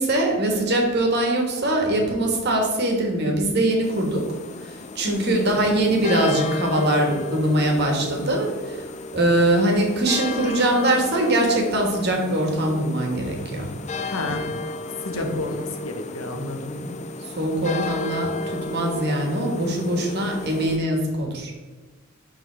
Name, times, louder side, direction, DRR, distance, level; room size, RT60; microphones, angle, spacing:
voice 1, 0.0-4.3 4.6-8.8 9.1-13.7 14.2-14.4 15.1-15.3 16.3-16.9 17.4-21.5, right 1 dB, 55° right, 1 dB, 1.5 m, -22 dB
sound 1, 3.8-20.8, left 2 dB, 35° left, 0.4 m, -33 dB
voice 2, 5.0-5.5 14.1-14.5 15.0-16.7, left 2 dB, 80° left, 5 dB, 1.0 m, -30 dB
11.0 x 3.8 x 3.4 m, 1.4 s
head